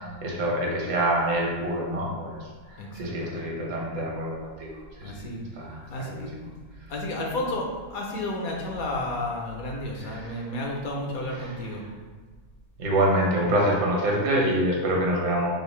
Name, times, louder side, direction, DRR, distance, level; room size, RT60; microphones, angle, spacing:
voice 1, 0.2-2.4 2.7-4.7 5.0-5.2 5.6-6.5 10.0-10.4 11.4-11.5 12.8-15.5, right 1 dB, 85° right, -2 dB, 1.5 m, -26 dB
voice 2, 2.8-3.4 5.0-5.4 5.9-6.3 6.9-11.8 13.4-13.5, left 1 dB, 65° left, -1 dB, 1.1 m, -32 dB
4.7 x 2.8 x 3.2 m, 1.4 s
omnidirectional pair, 1.7 m